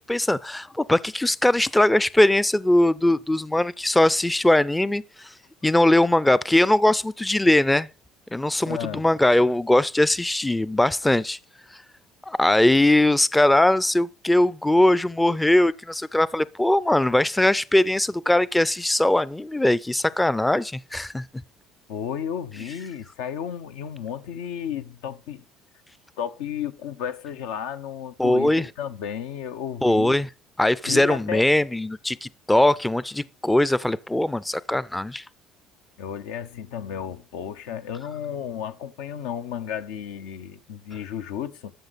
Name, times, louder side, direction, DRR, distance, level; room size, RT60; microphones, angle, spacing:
voice 1, 0.0-5.3 5.6-7.9 8.3-11.4 11.7-11.8 12.3-21.3 28.2-28.7 29.8-30.3 30.6-35.2, left 1 dB, 10° left, 0.4 m, -20 dB
voice 2, 8.7-9.1 21.9-25.4 26.2-30.2 30.9-31.4 36.0-41.7, left 9 dB, 85° left, 0.8 m, -33 dB
13.0 x 6.4 x 4.1 m
supercardioid pair, 95°, 0 cm